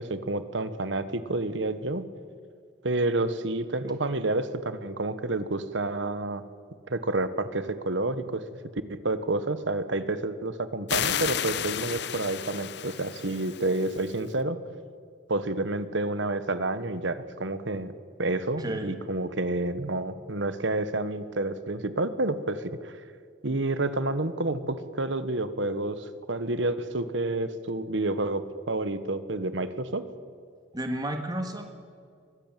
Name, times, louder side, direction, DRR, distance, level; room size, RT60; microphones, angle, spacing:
voice 1, 0.0-2.1 2.8-6.4 6.9-8.4 8.9-14.6 15.3-17.9 18.2-23.0 23.4-30.0, right 2 dB, 70° right, 12 dB, 1.2 m, -29 dB
sound 1, 10.9-14.2, left 9 dB, 60° left, 0.7 m, -32 dB
voice 2, 30.7-31.7, right 1 dB, 20° right, 4 dB, 1.9 m, -32 dB
22.5 x 14.0 x 9.0 m, 2.1 s
head